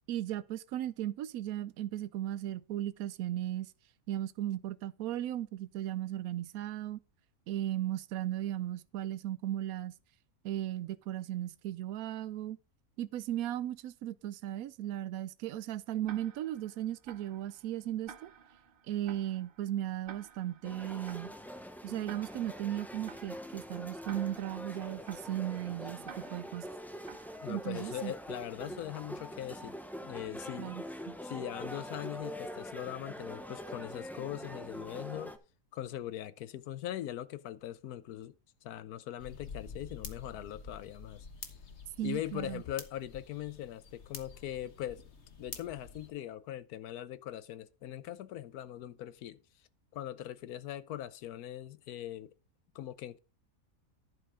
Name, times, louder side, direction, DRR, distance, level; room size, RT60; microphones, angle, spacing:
voice 1, 0.1-3.7 4.1-7.0 7.5-10.0 10.4-12.6 13.0-18.3 18.9-21.3 21.8-26.7 27.5-28.1 30.6-31.2 42.0-42.6, right 12 dB, 75° right, 1.1 m, -36 dB
Tick-tock, 16.1-27.9, right 8 dB, 50° right, 0.7 m, -54 dB
sound 1, 20.6-35.4, equal, ahead, 0.5 m, -44 dB
voice 2, 27.4-29.8 30.0-30.8 31.2-35.3 35.7-38.3 38.6-41.3 42.0-45.0 45.4-49.4 49.9-52.3 52.7-53.2, left 12 dB, 90° left, 1.2 m, -41 dB
sound 2, 39.2-46.1, left 5 dB, 50° left, 1.5 m, -48 dB
11.0 x 5.4 x 5.0 m
omnidirectional pair, 1.6 m